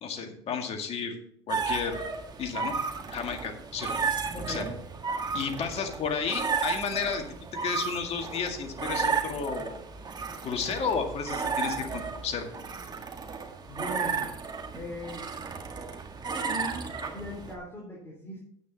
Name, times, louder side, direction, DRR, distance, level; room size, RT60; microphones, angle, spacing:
voice 1, 0.0-1.2 1.5-2.0 2.4-2.8 3.1-3.9 4.5-4.6 5.3-7.2 7.6-9.8 10.4-12.5, left 6 dB, 45° left, 4 dB, 2.1 m, -32 dB
sound 1, 1.5-17.6, right 5 dB, 30° right, 1.9 m, -33 dB
voice 2, 4.3-4.7 13.7-14.3 14.7-15.3 16.5-16.8 17.1-18.4, equal, 15° left, -2 dB, 3.6 m, -39 dB
9.6 x 9.0 x 4.1 m, 0.70 s
hypercardioid pair, 85°, 14 cm